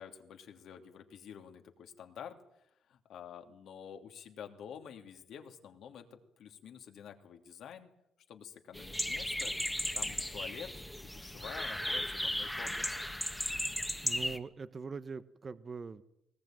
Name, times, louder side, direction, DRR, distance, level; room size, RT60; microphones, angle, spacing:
voice 1, 0.0-2.4 2.9-7.9 8.3-9.5 9.9-10.7 11.0-13.1, left 8 dB, 75° left, 5 dB, 2.9 m, -49 dB
sound 1, 8.7-14.4, left 1 dB, 5° left, 1.7 m, -36 dB
voice 2, 14.0-16.0, right 5 dB, 35° right, 13 dB, 1.1 m, -42 dB
20.5 x 19.5 x 9.1 m, 0.80 s
cardioid pair, 90°, 0 cm